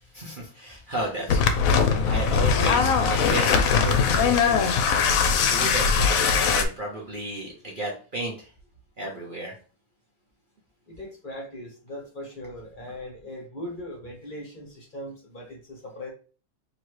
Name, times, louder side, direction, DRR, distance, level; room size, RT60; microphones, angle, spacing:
voice 1, 0.1-5.2 5.5-8.5 9.0-9.5, right 2 dB, 40° right, -2 dB, 0.8 m, -33 dB
sound 1, 1.3-6.7, left 6 dB, 75° left, 1.0 m, -21 dB
voice 2, 10.9-16.1, left 1 dB, 35° left, -2 dB, 1.2 m, -39 dB
3.0 x 2.9 x 4.6 m, 0.37 s
omnidirectional pair, 1.5 m